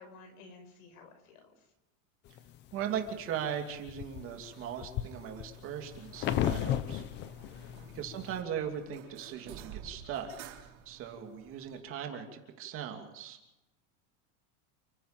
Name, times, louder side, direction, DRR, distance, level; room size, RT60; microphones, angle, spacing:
voice 1, 0.0-1.7 7.5-8.0, left 3 dB, 90° left, 6 dB, 6.3 m, -54 dB
sound 1, 2.4-3.1 3.6-8.4, left 11 dB, 25° left, 0.7 m, -35 dB
voice 2, 2.7-7.0 7.9-10.3 10.9-13.4, right 8 dB, 30° right, 4 dB, 2.8 m, -38 dB
sound 2, 4.1-11.8, right 8 dB, 65° right, 3.8 m, -53 dB
29.5 x 10.5 x 9.0 m, 0.95 s
supercardioid pair, 180°, 41 cm